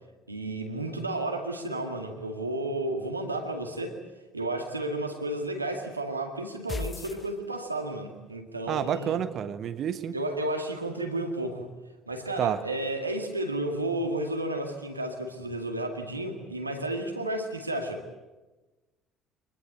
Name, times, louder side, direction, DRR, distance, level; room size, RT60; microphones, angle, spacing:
voice 1, 0.3-4.0 4.3-9.2 10.1-11.7 12.1-18.0, right 1 dB, 90° right, 4 dB, 2.1 m, -32 dB
sound 1, 6.7-8.0, left 3 dB, 25° left, 1.4 m, -36 dB
voice 2, 8.7-10.1 12.4-12.6, right 9 dB, 50° right, 12 dB, 1.2 m, -29 dB
24.0 x 21.0 x 8.1 m, 1.2 s
figure-of-eight pair, 55°, 0 cm